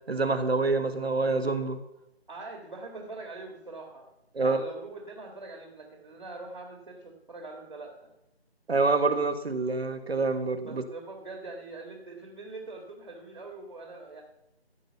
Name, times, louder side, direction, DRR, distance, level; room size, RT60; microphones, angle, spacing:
voice 1, 0.1-1.8 4.3-4.6 8.7-10.8, right 3 dB, 70° right, 9 dB, 1.6 m, -26 dB
voice 2, 2.3-4.1 4.3-8.1 10.7-14.2, right 3 dB, 45° right, 1 dB, 1.9 m, -43 dB
14.5 x 5.4 x 7.0 m, 0.85 s
figure-of-eight pair, 175°, 33 cm